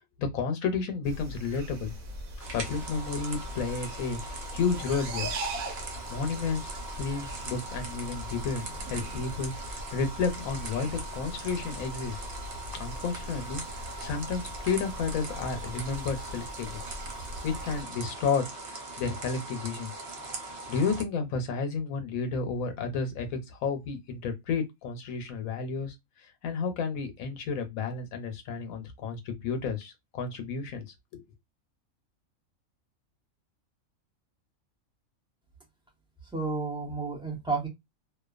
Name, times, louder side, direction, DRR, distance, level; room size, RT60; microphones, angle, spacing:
voice 1, 0.2-1.9 2.5-5.3 6.1-8.6 8.9-12.2 12.7-16.8 17.4-19.9 20.7-25.9 26.4-30.8 31.1-31.2, left 5 dB, 80° left, 1.1 m, -31 dB
sound 1, 1.0-17.8, right 1 dB, 80° right, 1.3 m, -41 dB
sound 2, 2.4-21.0, right 2 dB, 55° right, 0.9 m, -41 dB
voice 2, 36.3-37.7, right 4 dB, 5° right, 0.6 m, -31 dB
2.7 x 2.2 x 2.4 m
omnidirectional pair, 1.4 m